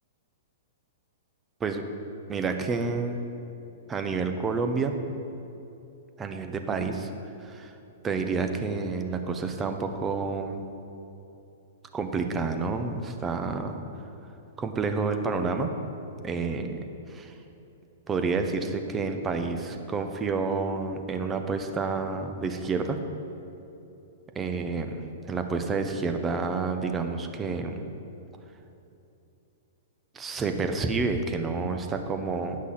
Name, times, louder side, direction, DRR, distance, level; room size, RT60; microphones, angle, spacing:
voice 1, 2.3-3.2 3.9-5.0 6.2-7.1 7.4-7.7 8.0-10.6 11.9-13.7 14.6-15.7 16.2-16.8 17.1-17.3 18.1-23.0 24.3-27.8 30.1-32.6, right 4 dB, 20° right, 6 dB, 0.8 m, -29 dB
9.5 x 6.0 x 5.9 m, 2.8 s
hypercardioid pair, 110°, 0 cm